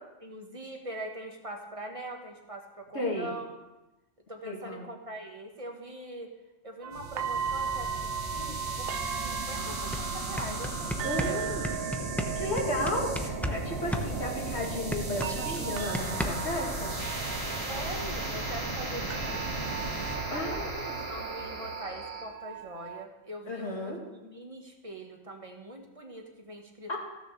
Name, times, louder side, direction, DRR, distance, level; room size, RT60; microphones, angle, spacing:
voice 1, 0.2-3.5 4.3-6.3 6.6-8.9 9.2-11.4 17.7-20.0 20.3-20.7 21.1-23.9 24.2-27.0, right 1 dB, 25° right, 2 dB, 1.7 m, -42 dB
voice 2, 2.9-3.3 4.4-4.9 11.0-11.6 12.3-17.0 20.3-21.0 23.5-24.0 26.9-27.0, left 1 dB, 60° left, -1 dB, 2.7 m, -33 dB
sound 1, 6.8-23.0, right 7 dB, 55° right, 0.8 m, -38 dB
sound 2, 6.9-22.2, right 2 dB, 85° right, 2.5 m, -36 dB
sound 3, 9.4-9.5 9.8-13.6 13.9-16.6, left 1 dB, ahead, 0.8 m, -34 dB
15.5 x 7.1 x 6.7 m, 1.0 s
omnidirectional pair, 1.3 m